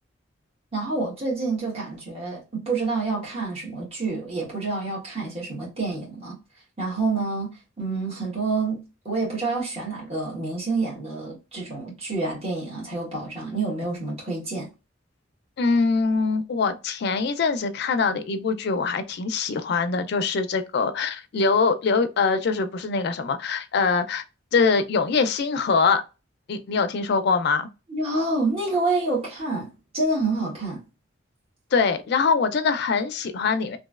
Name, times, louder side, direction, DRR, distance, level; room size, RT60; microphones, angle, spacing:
voice 1, 0.7-6.4 6.8-14.7 27.9-30.8, right 3 dB, 30° right, 1.3 m, -28 dB
voice 2, 15.6-24.2 24.5-26.0 26.5-27.7 31.7-33.8, left 4 dB, 55° left, 0.4 m, -23 dB
3.0 x 2.6 x 2.3 m
head